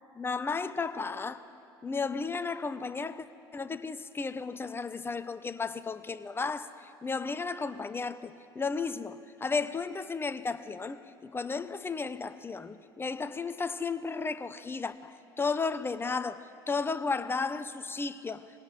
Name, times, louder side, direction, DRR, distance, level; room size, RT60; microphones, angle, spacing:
voice 1, 0.1-1.4 1.8-3.3 3.5-18.5, left 4 dB, 15° left, 0.9 m, -34 dB
20.5 x 17.5 x 7.5 m
hypercardioid pair, 70°, 13 cm